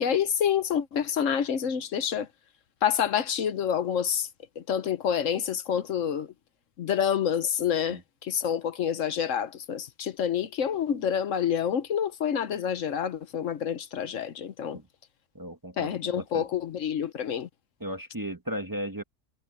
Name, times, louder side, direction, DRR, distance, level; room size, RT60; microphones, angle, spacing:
voice 1, 0.0-2.3 2.8-4.3 4.6-6.3 6.8-14.8 15.8-17.5, left 8 dB, 75° left, 1.3 m, -28 dB
voice 2, 15.3-16.5 17.8-19.0, equal, 15° right, 1.2 m, -36 dB
omnidirectional pair, 1.3 m